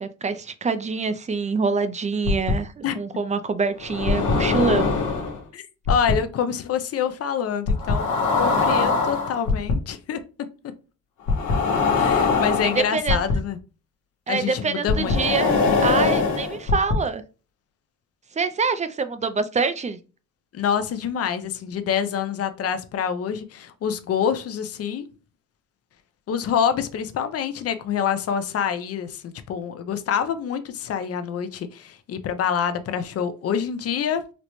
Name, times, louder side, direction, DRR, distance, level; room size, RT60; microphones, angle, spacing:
voice 1, 0.0-5.0 12.6-13.2 14.3-15.5 15.8-17.2 18.3-20.0, right 4 dB, 25° right, 11 dB, 0.4 m, -25 dB
sound 1, 2.3-2.5 3.8-5.4 5.9-6.1 7.7-9.7 11.3-13.3 14.9-16.9, left 4 dB, 80° left, 1.0 m, -22 dB
voice 2, 5.5-8.0 8.4-10.2 12.0-13.6 14.3-15.3 20.5-25.1 26.3-34.2, left 8 dB, 55° left, 10 dB, 0.6 m, -26 dB
4.1 x 2.0 x 3.0 m, 0.34 s
cardioid pair, 90°, 30 cm